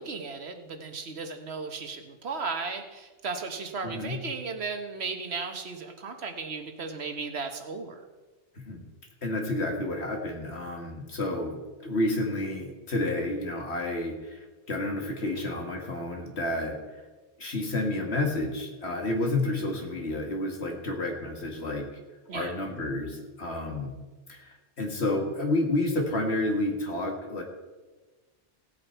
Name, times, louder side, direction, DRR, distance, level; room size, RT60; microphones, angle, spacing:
voice 1, 0.0-8.0 22.3-22.5, right 4 dB, 65° right, 7 dB, 1.3 m, -35 dB
voice 2, 3.8-4.2 8.6-8.8 9.2-17.0 17.4-21.9 22.3-23.9 24.3-27.4, left 2 dB, 65° left, 2 dB, 2.1 m, -30 dB
17.0 x 8.4 x 4.5 m, 1.2 s
omnidirectional pair, 1.2 m